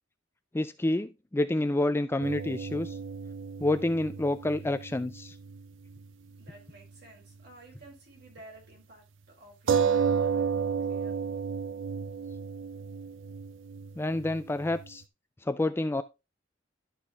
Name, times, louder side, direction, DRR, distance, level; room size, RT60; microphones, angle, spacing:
voice 1, 0.5-3.0 3.6-5.4 14.0-15.0 15.5-16.0, left 2 dB, 10° left, 0.3 m, -28 dB
sound 1, 2.2-6.1 6.3-6.5 9.7-14.9, right 6 dB, 75° right, 0.5 m, -32 dB
voice 2, 6.4-11.3, right 2 dB, 55° right, 3.7 m, -53 dB
12.0 x 4.3 x 3.4 m
head